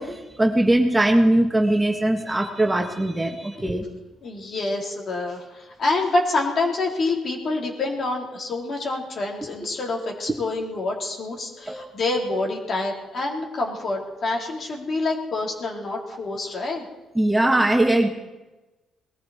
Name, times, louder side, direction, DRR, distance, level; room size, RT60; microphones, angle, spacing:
voice 1, 0.0-3.8 11.7-11.9 17.1-18.1, right 1 dB, 15° right, 3 dB, 1.5 m, -20 dB
voice 2, 4.2-16.8, left 2 dB, 50° left, -1 dB, 3.6 m, -27 dB
20.0 x 14.5 x 4.3 m, 1.1 s
cardioid pair, 90°, 0 cm